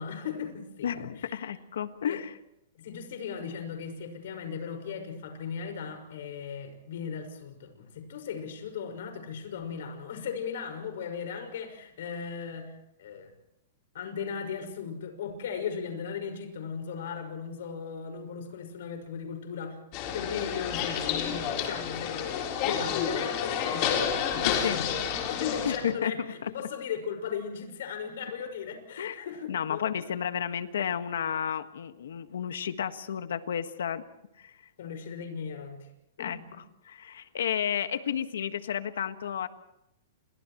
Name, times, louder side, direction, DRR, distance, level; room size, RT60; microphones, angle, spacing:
voice 1, 0.0-0.9 1.1-1.5 2.0-2.2 2.7-13.3 13.9-19.8 20.1-30.1 34.8-35.9 36.2-36.6, left 6 dB, 60° left, 5 dB, 5.7 m, -37 dB
voice 2, 0.8-2.3 24.4-24.8 25.6-26.1 26.4-26.5 29.0-29.2 29.5-34.0 34.4-34.5 36.2-36.4 36.9-39.5, left 8 dB, 85° left, 10 dB, 1.6 m, -32 dB
sound 1, 19.9-25.8, left 8 dB, 30° left, 3.8 m, -30 dB
29.5 x 29.5 x 3.2 m, 0.81 s
hypercardioid pair, 170°, 0 cm